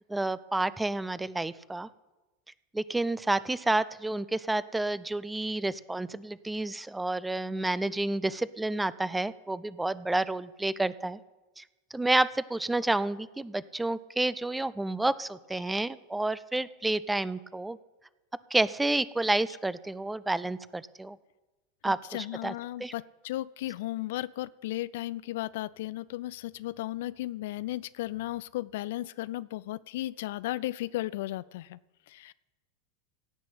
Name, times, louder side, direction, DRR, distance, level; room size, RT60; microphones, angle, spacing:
voice 1, 0.1-1.9 2.7-11.2 11.6-11.7 11.9-17.8 18.5-21.2 21.8-22.5 22.8-22.9, right 2 dB, 10° right, 18 dB, 0.5 m, -30 dB
voice 2, 21.9-31.8 32.1-32.3, left 16 dB, 60° left, 18 dB, 0.3 m, -35 dB
16.5 x 6.0 x 8.5 m, 1.1 s
figure-of-eight pair, 85°, 0 cm